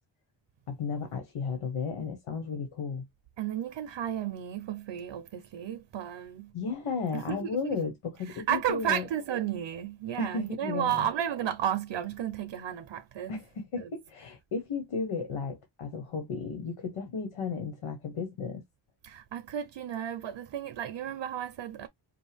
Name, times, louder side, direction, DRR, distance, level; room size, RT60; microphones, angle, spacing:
voice 1, 0.7-3.0 6.5-9.0 10.2-11.1 13.3-18.6, left 4 dB, 85° left, 1.4 m, -34 dB
voice 2, 3.4-6.5 7.1-7.6 8.3-13.3 13.8-13.9 19.0-21.9, right 10 dB, 70° right, 0.7 m, -33 dB
5.3 x 2.3 x 3.5 m
wide cardioid pair, 155°, 49 cm